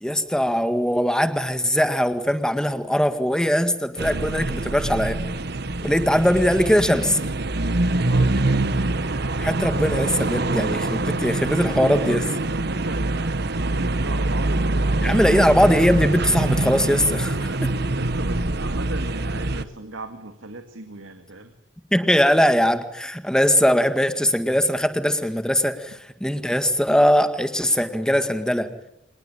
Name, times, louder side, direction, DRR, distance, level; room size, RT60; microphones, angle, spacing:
voice 1, 0.0-5.2 5.8-7.2 9.4-12.2 15.0-17.7 21.9-28.7, equal, 5° left, 9 dB, 1.9 m, -21 dB
sound 1, 4.0-19.6, right 2 dB, 55° right, 1.2 m, -24 dB
voice 2, 7.9-8.6 11.5-15.6 17.9-21.5, right 2 dB, 85° right, 6 dB, 2.2 m, -37 dB
25.5 x 20.0 x 9.0 m, 0.83 s
head